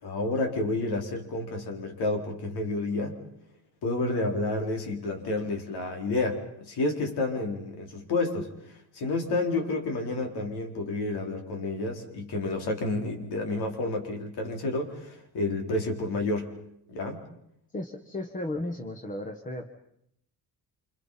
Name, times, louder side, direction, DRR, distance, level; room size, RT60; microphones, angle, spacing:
voice 1, 0.0-3.2 3.8-16.5 16.9-17.3, left 2 dB, 85° left, 3 dB, 4.1 m, -30 dB
voice 2, 17.7-19.7, left 1 dB, 20° left, 5 dB, 1.3 m, -35 dB
27.5 x 26.5 x 5.7 m, 0.74 s
cardioid pair, 175°, 38 cm